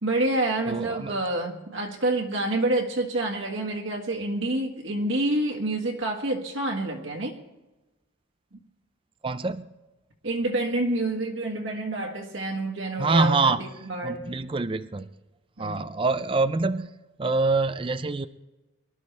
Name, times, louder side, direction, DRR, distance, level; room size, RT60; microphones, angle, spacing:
voice 1, 0.0-7.3 10.2-13.5 13.8-14.2 15.6-15.9, right 1 dB, 65° right, 1 dB, 1.7 m, -28 dB
voice 2, 0.7-1.1 9.2-9.7 13.0-13.6 14.0-15.1 15.6-16.9 17.2-18.3, right 3 dB, 25° right, 12 dB, 0.4 m, -25 dB
23.5 x 12.5 x 3.4 m, 1.1 s
head